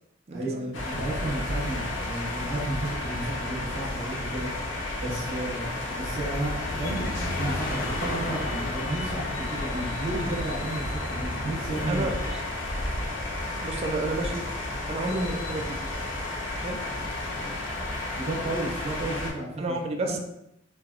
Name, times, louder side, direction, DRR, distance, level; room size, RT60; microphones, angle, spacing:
voice 1, 0.3-12.1 18.1-19.7 20.0-20.2, right 1 dB, 60° right, -7 dB, 0.9 m, -33 dB
sound 1, 0.7-19.3, left 1 dB, 80° left, 0.7 m, -32 dB
sound 2, 6.1-11.9, left 2 dB, 50° left, 0.4 m, -37 dB
voice 2, 11.9-12.4 13.6-14.5 14.9-15.8 16.6-16.8 19.6-20.2, right 2 dB, 35° right, 3 dB, 0.3 m, -30 dB
3.3 x 2.2 x 2.3 m, 0.83 s
head